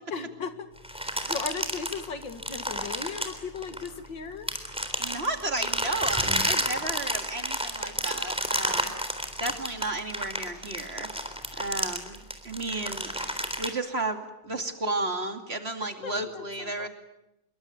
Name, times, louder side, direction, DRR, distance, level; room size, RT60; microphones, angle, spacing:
voice 1, 0.1-4.5 16.0-16.9, left 5 dB, 80° left, 9 dB, 2.7 m, -37 dB
sound 1, 0.8-4.1 4.5-13.7, equal, 5° right, 3.6 m, -30 dB
voice 2, 5.0-8.9 9.4-11.1 11.6-16.9, right 2 dB, 35° right, 6 dB, 2.7 m, -33 dB
27.0 x 23.5 x 9.3 m, 0.90 s
omnidirectional pair, 2.0 m